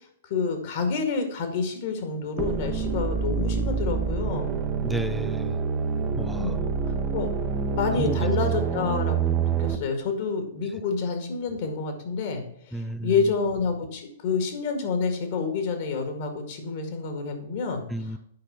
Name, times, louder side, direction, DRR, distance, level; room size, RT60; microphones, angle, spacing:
voice 1, 0.2-4.6 6.3-6.6 7.1-7.3 7.7-12.4 12.7-17.8, left 4 dB, 50° left, 5 dB, 2.1 m, -28 dB
sound 1, 2.4-9.8, right 6 dB, 30° right, 0.9 m, -27 dB
voice 2, 4.8-5.6 6.2-6.6 8.0-8.2 12.7-13.3 17.9-18.2, right 1 dB, ahead, 11 dB, 0.5 m, -32 dB
8.8 x 5.5 x 5.6 m, 0.69 s
figure-of-eight pair, 110°, 0 cm